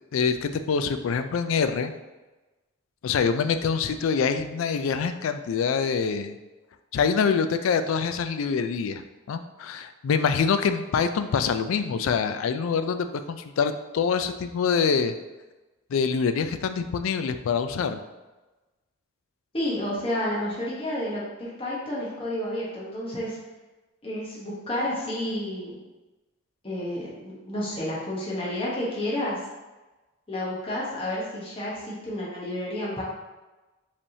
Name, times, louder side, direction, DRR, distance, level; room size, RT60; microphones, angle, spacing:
voice 1, 0.1-1.9 3.0-6.4 6.9-9.0 9.3-15.1 15.9-18.0, left 6 dB, 75° left, 10 dB, 0.3 m, -25 dB
voice 2, 19.5-23.4 24.0-25.8 26.6-29.4 30.3-33.0, left 1 dB, 25° left, -7 dB, 1.1 m, -30 dB
5.2 x 3.4 x 2.7 m, 1.1 s
head